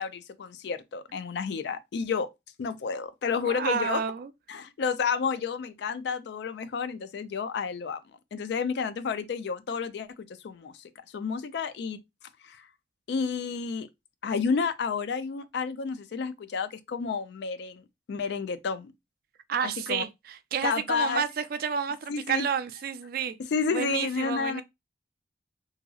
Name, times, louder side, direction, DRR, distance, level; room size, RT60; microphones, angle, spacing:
voice 1, 0.0-2.3 2.6-4.0 4.5-8.0 8.3-10.7 11.1-12.0 12.4-12.7 13.1-13.9 14.2-18.9 19.6-20.0 20.6-21.2 22.1-22.5 23.5-24.6, left 5 dB, 65° left, 0.3 m, -30 dB
voice 2, 3.4-4.3 19.5-23.4 23.7-24.6, right 7 dB, 55° right, 0.3 m, -30 dB
2.8 x 2.7 x 2.3 m
head